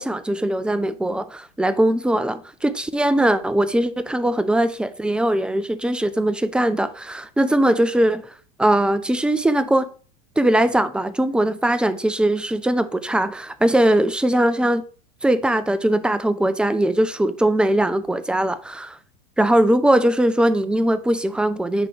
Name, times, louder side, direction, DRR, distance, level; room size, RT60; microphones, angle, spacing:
voice 1, 0.0-8.3 8.6-9.9 10.4-14.8 15.2-19.0 19.4-21.9, right 1 dB, 5° right, 0.5 m, -20 dB
9.7 x 3.7 x 3.3 m
supercardioid pair, 115°, 20 cm